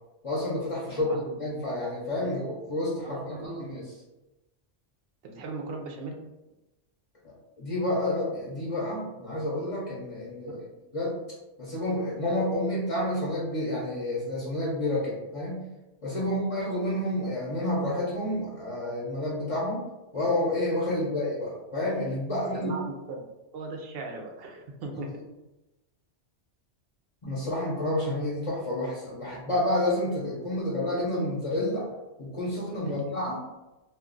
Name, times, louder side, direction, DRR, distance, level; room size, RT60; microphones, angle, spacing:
voice 1, 0.2-3.9 7.6-10.6 10.9-11.1 11.6-15.6 16.0-19.8 20.1-22.7 27.2-31.9 32.2-33.4, left 1 dB, 35° left, -6 dB, 0.7 m, -29 dB
voice 2, 0.8-1.3 2.2-2.3 3.0-3.6 5.2-6.2 10.4-10.5 16.1-16.3 22.5-22.8 23.1-23.2 23.5-25.1 32.8-33.3, right 3 dB, 60° right, 2 dB, 0.7 m, -39 dB
2.4 x 2.3 x 3.7 m, 1.0 s
omnidirectional pair, 1.2 m